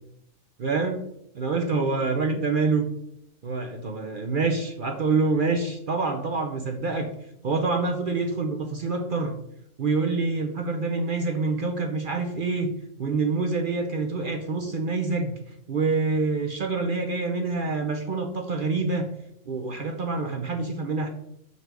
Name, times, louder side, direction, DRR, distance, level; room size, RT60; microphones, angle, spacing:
voice 1, 0.6-1.1 1.3-2.9 3.4-7.1 7.4-9.4 9.8-15.3 15.7-19.1 19.5-21.1, right 3 dB, 55° right, 4 dB, 0.6 m, -26 dB
6.5 x 4.1 x 4.6 m, 0.76 s
omnidirectional pair, 1.5 m